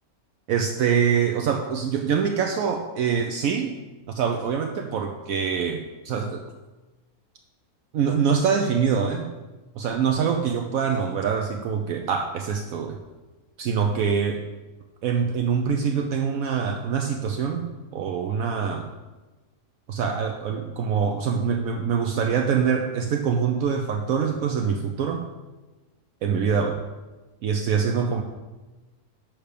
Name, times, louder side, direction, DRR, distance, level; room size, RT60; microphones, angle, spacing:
voice 1, 0.5-3.7 4.1-6.4 7.9-9.3 9.8-13.0 13.6-14.4 15.0-18.9 19.9-25.3 26.2-26.8 27.4-28.2, right 6 dB, 70° right, 4 dB, 1.0 m, -24 dB
10.0 x 3.4 x 6.7 m, 1.2 s
omnidirectional pair, 1.6 m